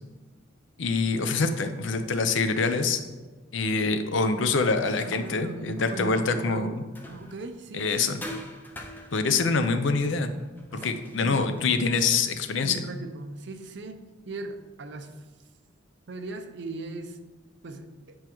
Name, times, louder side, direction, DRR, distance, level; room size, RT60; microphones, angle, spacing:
voice 1, 0.8-3.0 3.5-6.8 7.7-8.2 9.1-10.3 10.8-12.8, left 4 dB, 70° left, 8 dB, 0.5 m, -25 dB
sound 1, 4.5-7.6 8.2-12.1, left 1 dB, 10° left, 0.5 m, -45 dB
voice 2, 5.0-8.1 10.7-10.9 11.2-11.7 12.6-15.2 16.1-17.2 17.6-18.2, right 3 dB, 60° right, 7 dB, 0.5 m, -38 dB
8.7 x 4.7 x 3.0 m, 1.3 s
head